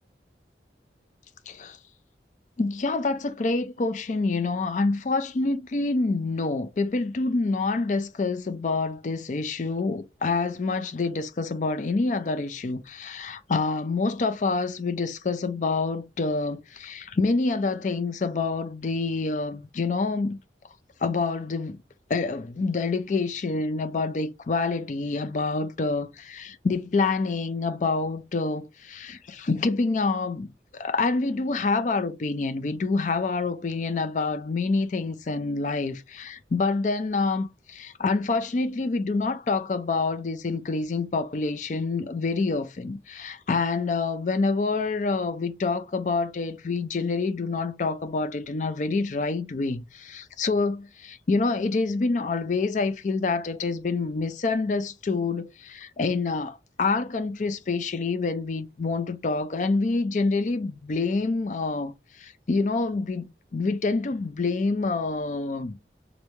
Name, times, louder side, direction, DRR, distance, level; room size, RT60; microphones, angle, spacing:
voice 1, 1.5-1.8 2.6-20.4 21.0-21.8 22.1-65.7, left 3 dB, 45° left, 0.4 m, -27 dB
3.1 x 2.6 x 3.2 m
head